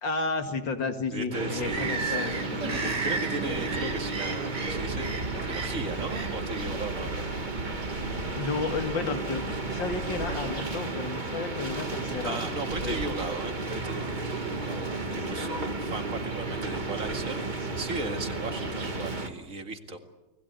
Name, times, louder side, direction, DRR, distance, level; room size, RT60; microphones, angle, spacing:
voice 1, 0.0-2.3 2.6-2.9 8.3-12.4 12.8-13.0 15.2-15.4, left 4 dB, 85° left, 6 dB, 2.7 m, -32 dB
voice 2, 1.1-2.4 2.7-8.2 12.2-20.0, right 3 dB, 45° right, 6 dB, 2.5 m, -37 dB
sound 1, 1.3-19.3, right 3 dB, 25° right, 1.8 m, -34 dB
Bird vocalization bird call bird song, 1.6-19.3, right 3 dB, 70° right, 3.0 m, -38 dB
sound 2, 4.7-10.7, right 2 dB, 85° right, 3.9 m, -39 dB
29.5 x 20.5 x 8.2 m, 1.1 s
omnidirectional pair, 2.0 m